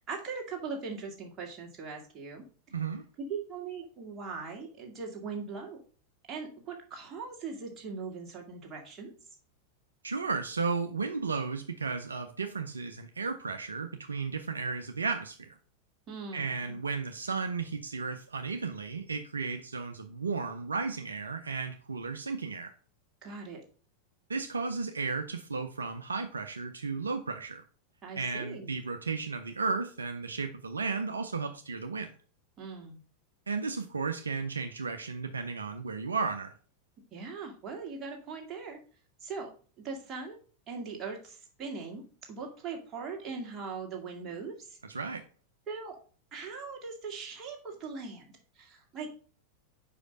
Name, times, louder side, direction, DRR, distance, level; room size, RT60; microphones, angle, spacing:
voice 1, 0.1-2.4 3.3-5.8 6.3-9.1 16.1-16.8 23.2-23.6 28.0-28.8 32.6-33.0 37.1-38.8 39.2-39.5 39.8-40.4 40.7-45.0 45.7-46.0 46.3-49.1, right 5 dB, 25° right, 1 dB, 1.7 m, -40 dB
voice 2, 2.7-3.0 10.0-15.6 16.3-22.7 24.3-27.6 28.2-32.1 33.5-36.5 44.9-45.2, right 4 dB, 75° right, 6 dB, 0.5 m, -34 dB
5.0 x 4.9 x 5.3 m, 0.42 s
figure-of-eight pair, 90°, 0 cm